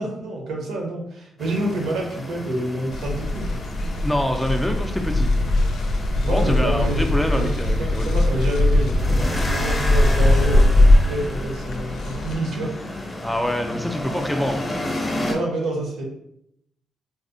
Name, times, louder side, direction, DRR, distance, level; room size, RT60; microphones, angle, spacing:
voice 1, 0.0-3.6 6.2-7.0 7.3-7.5 7.8-12.7 15.3-16.0, right 1 dB, 90° right, 0 dB, 0.9 m, -28 dB
sound 1, 1.4-15.3, left 1 dB, 20° left, 0.7 m, -32 dB
sound 2, 2.9-12.3, left 1 dB, 75° left, 0.4 m, -20 dB
voice 2, 3.8-5.3 6.3-8.1 13.2-14.6, equal, 5° left, 3 dB, 0.3 m, -25 dB
Bass guitar, 6.2-10.5, right 5 dB, 55° right, 0.6 m, -42 dB
4.1 x 2.0 x 2.6 m, 0.75 s
cardioid pair, 130°, 0 cm